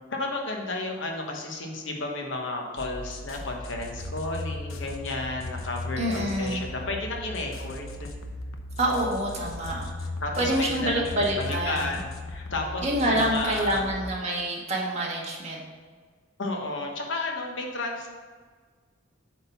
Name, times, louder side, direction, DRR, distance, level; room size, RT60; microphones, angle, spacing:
voice 1, 0.1-8.1 10.2-13.9 16.4-18.1, left 2 dB, 65° left, 1 dB, 1.2 m, -33 dB
sound 1, 2.8-14.1, left 2 dB, 90° left, 0.8 m, -37 dB
voice 2, 6.0-6.6 8.8-10.1 10.4-12.0 12.8-15.6, right 1 dB, 30° right, -3 dB, 1.5 m, -27 dB
8.3 x 3.8 x 5.9 m, 1.5 s
head